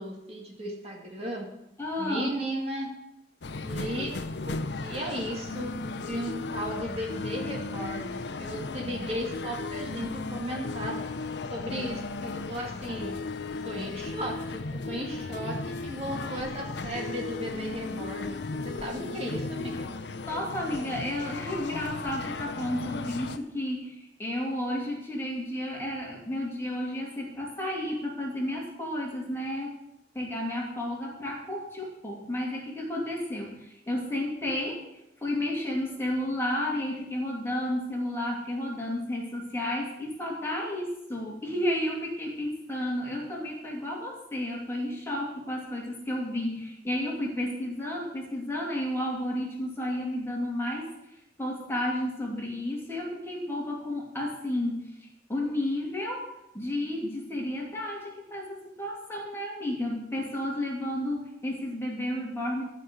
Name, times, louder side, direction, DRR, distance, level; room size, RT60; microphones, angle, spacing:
voice 1, 0.0-1.5 2.0-2.9 3.6-4.1 4.5-11.0 11.5-13.2 13.6-19.9, equal, 35° right, -1 dB, 2.1 m, -35 dB
voice 2, 1.8-2.3 20.2-29.7 30.1-34.9 35.2-50.9 51.4-62.6, left 1 dB, 15° left, -3 dB, 2.7 m, -32 dB
sound 1, 3.4-23.4, left 3 dB, 75° left, 0.7 m, -36 dB
13.5 x 5.4 x 8.1 m, 0.86 s
head